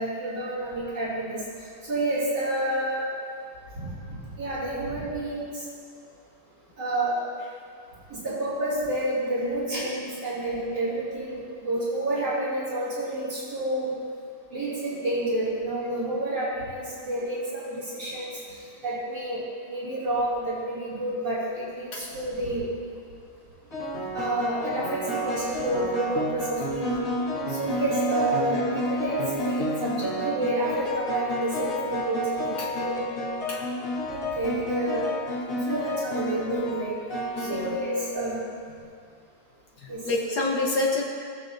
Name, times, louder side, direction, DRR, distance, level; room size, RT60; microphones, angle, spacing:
voice 1, 0.0-1.4 1.9-3.1 3.7-5.6 6.8-7.2 8.1-13.9 14.5-18.3 18.8-19.4 19.7-22.6 24.1-27.1 27.5-33.0 33.4-33.6 34.1-35.0 35.5-37.0 37.4-38.4 39.9-40.0, right 1 dB, 75° right, -13 dB, 3.4 m, -29 dB
sound 1, 22.1-22.5 23.7-38.5, equal, 50° left, 2.2 m, -31 dB
voice 2, 37.4-37.8 39.8-41.0, left 2 dB, 70° left, -2 dB, 1.6 m, -27 dB
19.5 x 7.0 x 2.7 m, 2.3 s
omnidirectional pair, 1.8 m